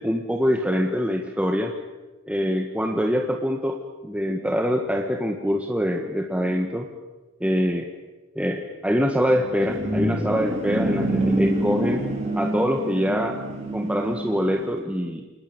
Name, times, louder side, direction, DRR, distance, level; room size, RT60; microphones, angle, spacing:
voice 1, 0.0-1.7 2.3-6.9 7.4-7.9 8.3-12.0 12.3-13.3 13.7-15.2, equal, 5° right, 3 dB, 1.6 m, -24 dB
sound 1, 9.2-14.8, right 1 dB, 35° right, 4.9 m, -27 dB
28.5 x 20.0 x 8.7 m, 1.2 s
head